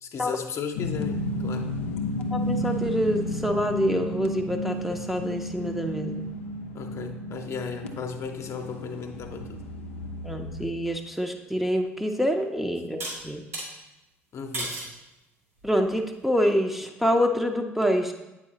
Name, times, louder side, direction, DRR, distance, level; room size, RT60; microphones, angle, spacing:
voice 1, 0.0-1.7 6.7-9.6 14.3-14.8, left 5 dB, 45° left, 4 dB, 0.7 m, -35 dB
sound 1, 0.8-10.7, left 1 dB, 80° left, 0.5 m, -32 dB
voice 2, 2.3-6.2 10.2-13.4 15.6-18.1, equal, 5° right, 2 dB, 0.6 m, -26 dB
sound 2, 11.6-11.7 13.0-13.7 14.5-14.9 15.6-16.0, right 1 dB, 85° right, 1.7 m, -34 dB
8.3 x 4.8 x 2.8 m, 0.97 s
figure-of-eight pair, 55°, 7 cm